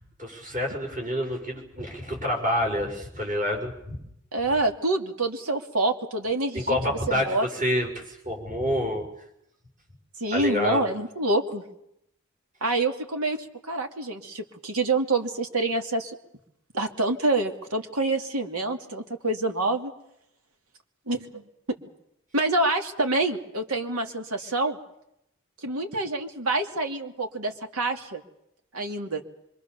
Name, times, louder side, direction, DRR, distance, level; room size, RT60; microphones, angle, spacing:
voice 1, 0.2-4.0 6.5-9.1 10.3-10.8, left 1 dB, 35° right, 1 dB, 6.6 m, -28 dB
voice 2, 4.3-7.5 10.2-11.6 12.6-13.4 13.6-16.1 16.7-19.9 21.1-21.4 22.3-24.8 25.6-28.2 28.7-29.2, right 2 dB, 85° right, 5 dB, 2.7 m, -27 dB
26.0 x 24.5 x 7.0 m, 0.78 s
head